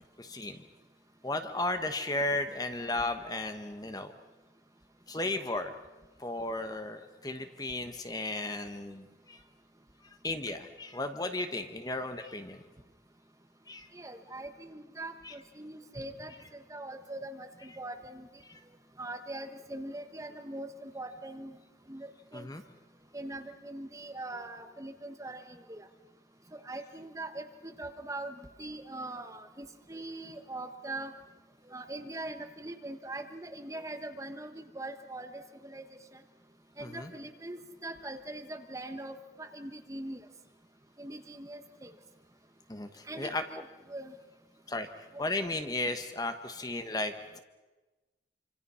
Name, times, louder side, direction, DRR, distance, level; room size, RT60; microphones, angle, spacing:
voice 1, 0.2-0.6 1.2-4.1 5.1-5.7 6.2-9.4 10.2-12.6 13.7-13.9 15.2-15.3 18.5-18.6 22.3-22.6 36.8-37.1 42.7-43.4 44.7-47.4, left 2 dB, 20° left, 7 dB, 1.1 m, -35 dB
voice 2, 13.9-18.3 19.0-21.6 21.9-22.5 23.1-25.9 26.5-31.1 31.7-35.3 35.6-35.8 36.8-40.2 41.0-41.9 43.1-43.6 43.9-44.1, right 2 dB, 15° right, 7 dB, 1.2 m, -42 dB
26.5 x 25.5 x 5.7 m, 1.2 s
head